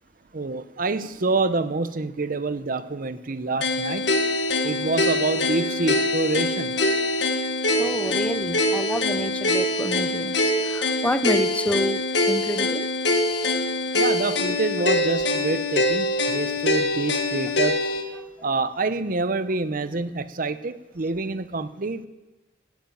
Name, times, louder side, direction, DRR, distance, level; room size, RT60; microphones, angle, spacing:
voice 1, 0.3-4.0 4.6-6.7 13.9-17.8 18.4-22.1, right 3 dB, 50° right, 0.8 m, -27 dB
sound 1, 3.6-18.0, left 2 dB, 80° left, 1.6 m, -24 dB
voice 2, 7.8-12.9, left 1 dB, 10° left, 0.6 m, -28 dB
16.5 x 8.9 x 9.3 m
head